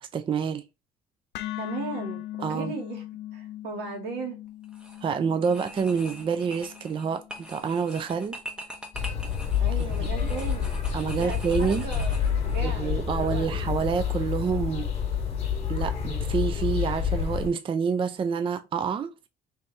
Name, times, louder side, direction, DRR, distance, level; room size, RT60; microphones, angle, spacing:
voice 1, 0.0-0.6 2.4-2.7 5.0-8.4 10.2-10.3 10.9-11.9 12.6-14.9 15.7-19.3, right 6 dB, 30° right, 0.4 m, -28 dB
sound 1, 1.3-9.5, left 14 dB, 80° left, 0.5 m, -40 dB
voice 2, 1.6-2.2 2.5-3.0 3.3-4.4 9.6-10.8 11.1-13.6, right 4 dB, 80° right, 2.0 m, -37 dB
sound 2, 4.6-5.0 5.4-12.6, equal, 5° right, 1.2 m, -43 dB
sound 3, 8.9-17.5, left 8 dB, 40° left, 1.7 m, -28 dB
3.3 x 3.2 x 4.2 m
cardioid pair, 110°, 17 cm